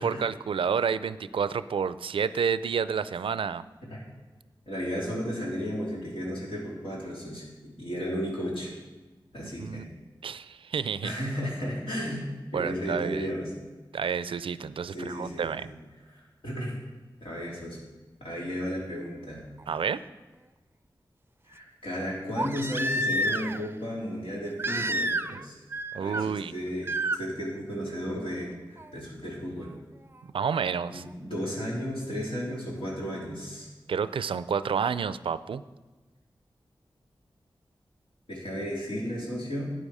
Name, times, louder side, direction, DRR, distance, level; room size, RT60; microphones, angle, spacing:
voice 1, 0.0-3.6 9.6-9.9 10.2-11.1 12.5-13.3 13.9-15.7 19.7-20.0 25.9-26.5 30.3-31.0 33.9-35.6, right 6 dB, 90° right, 15 dB, 0.4 m, -29 dB
voice 2, 4.7-7.5 7.8-8.7 9.3-9.8 11.0-12.3 12.5-13.5 14.9-15.7 16.1-16.8 17.2-17.8 18.2-19.5 21.5-25.6 26.0-29.7 30.9-33.7 38.3-39.7, equal, 85° left, -5 dB, 3.6 m, -34 dB
Crying sobbing, 19.6-19.7 22.3-23.7 24.6-25.4 25.7-26.2 26.8-27.2 28.8-28.9, right 1 dB, 25° right, 0.4 m, -29 dB
12.0 x 8.9 x 4.9 m, 1.2 s
cardioid pair, 45°, 9 cm